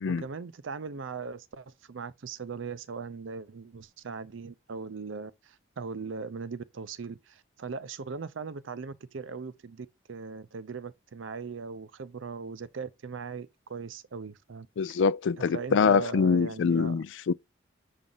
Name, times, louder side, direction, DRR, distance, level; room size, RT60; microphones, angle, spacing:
voice 1, 0.1-15.0 15.4-17.0, right 5 dB, 85° right, 0.6 m, -39 dB
voice 2, 14.8-17.3, left 5 dB, 75° left, 0.4 m, -24 dB
7.4 x 2.5 x 5.4 m
head